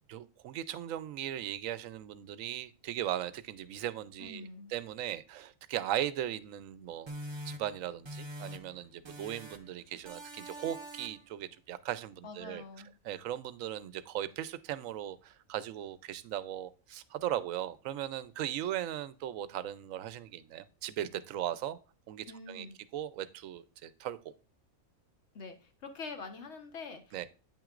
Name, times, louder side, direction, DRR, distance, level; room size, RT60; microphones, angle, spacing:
voice 1, 0.1-7.1 7.4-12.6 13.0-21.8 22.1-22.7 22.9-24.2 27.1-27.3, right 11 dB, 70° right, 15 dB, 1.0 m, -38 dB
voice 2, 4.2-4.7 12.2-12.9 22.3-22.8 25.3-27.3, left 4 dB, 50° left, 6 dB, 1.5 m, -45 dB
sound 1, 7.1-8.8 9.0-9.7 10.0-11.3, equal, 35° right, 0.4 m, -44 dB
8.8 x 6.1 x 2.4 m, 0.34 s
omnidirectional pair, 1.5 m